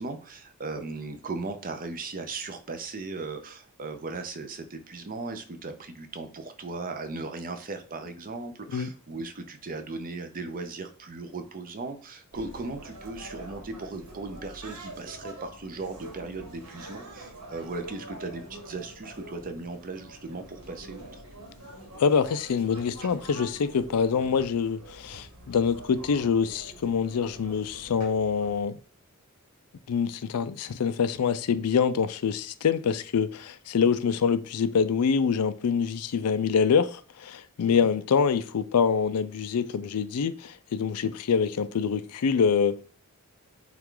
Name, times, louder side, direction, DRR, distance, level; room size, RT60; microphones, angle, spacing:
voice 1, 0.0-21.2, right 3 dB, 40° right, 0.6 m, -37 dB
sound 1, 12.3-28.6, right 1 dB, 80° right, 1.4 m, -45 dB
voice 2, 22.0-28.8 29.9-42.8, left 6 dB, 90° left, 0.4 m, -25 dB
5.7 x 2.4 x 3.8 m
head